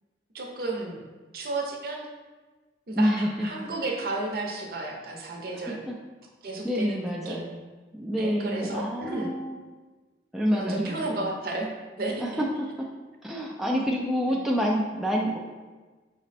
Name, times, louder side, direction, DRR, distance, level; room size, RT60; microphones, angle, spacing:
voice 1, 0.3-1.0 1.3-2.1 2.9-5.8 6.4-7.4 8.2-9.3 10.5-11.7 12.0-12.4 14.3-14.4, right 2 dB, 55° right, 0 dB, 0.7 m, -32 dB
voice 2, 2.9-3.5 5.7-5.9 6.6-7.6 7.9-9.6 10.3-11.3 12.2-12.7 13.2-15.4, equal, ahead, -3 dB, 0.3 m, -28 dB
5.1 x 2.1 x 4.1 m, 1.3 s
head